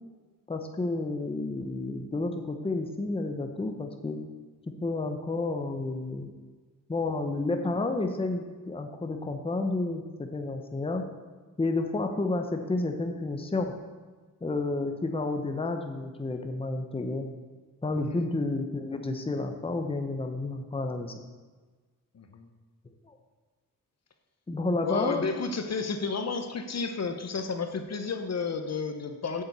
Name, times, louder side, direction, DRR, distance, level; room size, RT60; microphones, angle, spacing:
voice 1, 0.5-4.2 4.8-6.3 6.9-11.1 11.6-13.7 14.4-17.3 17.8-21.2 23.1-23.2 24.5-25.3, left 2 dB, 15° left, 5 dB, 0.9 m, -30 dB
voice 2, 17.9-18.3 22.1-22.5 24.8-29.4, left 4 dB, 50° left, 7 dB, 0.9 m, -32 dB
8.7 x 7.1 x 8.1 m, 1.3 s
wide cardioid pair, 160°, 33 cm